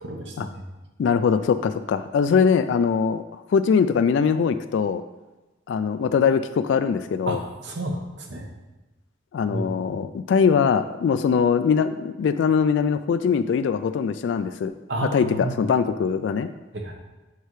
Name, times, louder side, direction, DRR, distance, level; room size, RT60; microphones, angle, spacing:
voice 1, 0.0-0.5 7.3-8.4 9.5-10.0 14.9-15.6 16.7-16.9, right 1 dB, 70° right, 2 dB, 1.0 m, -31 dB
voice 2, 1.0-5.0 5.7-7.4 9.3-14.7 15.1-16.5, left 6 dB, 75° left, 10 dB, 0.3 m, -22 dB
8.2 x 5.5 x 3.2 m, 1.1 s
head